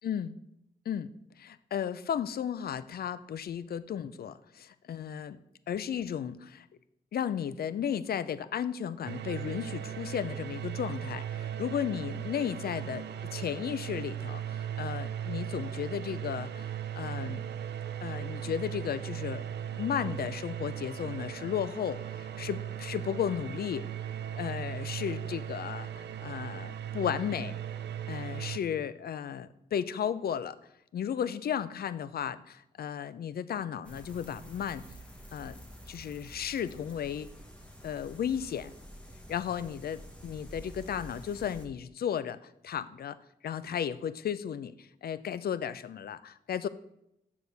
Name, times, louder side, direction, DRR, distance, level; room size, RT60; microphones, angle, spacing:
voice 1, 0.0-0.4 0.9-1.1 1.4-5.4 5.7-6.7 7.1-17.5 18.0-19.4 19.7-23.9 24.3-27.6 28.1-30.6 30.9-34.8 35.3-35.6 35.9-37.3 37.8-38.7 39.3-43.2 43.4-46.7, left 8 dB, 65° left, 15 dB, 0.4 m, -34 dB
sound 1, 9.0-28.6, right 10 dB, 80° right, 0.4 m, -38 dB
sound 2, 33.8-41.7, equal, 5° left, 1.2 m, -49 dB
7.0 x 6.4 x 3.3 m, 0.81 s
cardioid pair, 70°, 17 cm